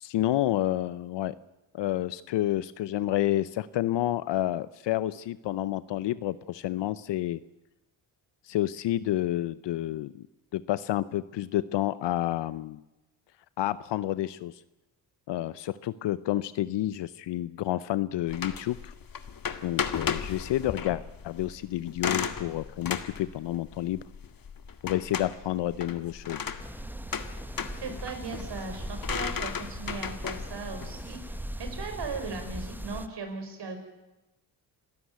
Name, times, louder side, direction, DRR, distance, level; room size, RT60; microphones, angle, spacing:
voice 1, 0.0-1.4 1.7-7.4 8.4-10.3 10.5-12.8 13.6-14.5 15.3-18.9 19.6-24.0 24.8-26.4, left 14 dB, 70° left, 17 dB, 0.7 m, -29 dB
sound 1, 18.3-32.8, left 7 dB, 50° left, 2.0 m, -36 dB
sound 2, 26.6-33.1, right 1 dB, 5° right, 1.3 m, -39 dB
voice 2, 27.7-33.8, right 4 dB, 65° right, 5 dB, 5.5 m, -38 dB
27.0 x 13.0 x 9.5 m, 1.0 s
supercardioid pair, 55°, 45 cm